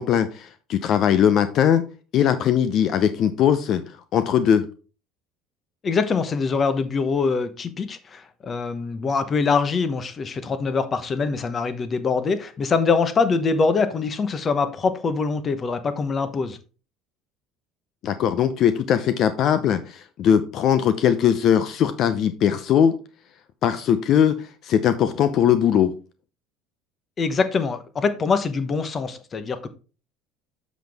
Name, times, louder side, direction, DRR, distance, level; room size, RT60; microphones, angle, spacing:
voice 1, 0.0-1.8 2.1-3.8 4.1-4.7 18.0-23.0 23.6-25.9, left 9 dB, 55° left, 0.6 m, -20 dB
voice 2, 5.8-16.6 27.2-29.7, left 4 dB, 35° left, 1.0 m, -24 dB
7.1 x 6.1 x 3.5 m
supercardioid pair, 105°, 0 cm